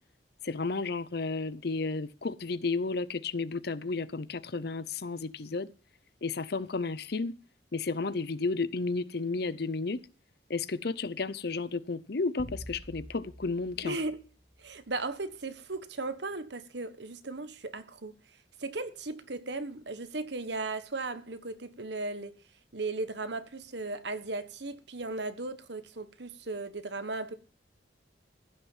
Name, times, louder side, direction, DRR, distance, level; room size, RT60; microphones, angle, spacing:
voice 1, 0.4-5.7 6.2-7.3 7.7-10.0 10.5-14.0, left 3 dB, 60° left, 0.7 m, -32 dB
sound 1, 12.4-14.9, equal, 15° right, 2.0 m, -47 dB
voice 2, 13.8-14.2 14.6-18.1 18.6-22.3 22.7-27.3, right 3 dB, 65° right, 1.3 m, -36 dB
15.5 x 6.7 x 7.3 m
head